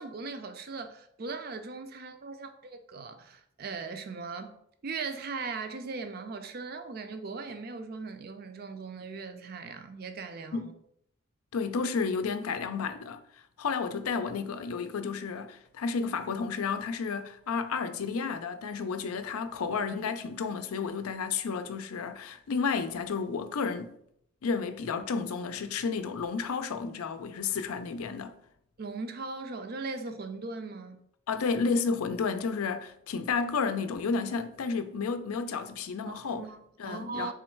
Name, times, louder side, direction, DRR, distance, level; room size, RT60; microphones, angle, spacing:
voice 1, 0.0-4.6 4.8-10.7 28.8-31.0 36.0-37.3, right 4 dB, 45° right, 0.4 m, -39 dB
voice 2, 11.5-13.2 13.6-24.0 24.4-28.3 31.3-36.5 36.8-37.3, left 5 dB, 90° left, 0.5 m, -31 dB
3.7 x 3.1 x 4.4 m
head